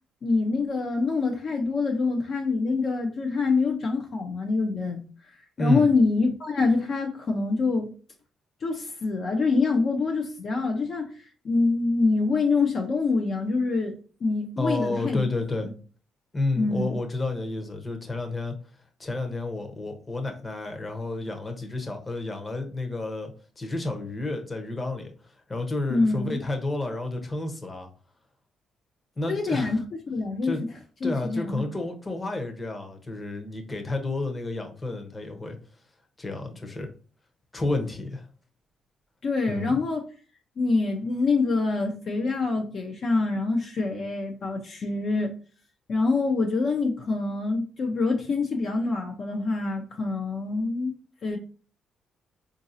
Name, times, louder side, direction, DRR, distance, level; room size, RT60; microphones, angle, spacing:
voice 1, 0.2-5.0 5.6-7.9 8.6-13.9 14.2-15.3 15.6-15.7 16.6-17.0 25.9-26.4 29.3-29.8 30.1-30.6 31.0-31.6 39.2-40.0 40.6-45.4 45.9-50.9 51.2-51.4, left 3 dB, 55° left, 0.6 m, -25 dB
voice 2, 5.6-5.9 14.6-15.7 16.3-18.5 19.0-27.9 29.2-29.8 30.4-30.6 31.0-35.6 36.2-36.9 37.5-38.2 39.5-39.8, left 2 dB, 25° left, 0.8 m, -30 dB
3.9 x 2.6 x 2.6 m
cardioid pair, 90°, 0 cm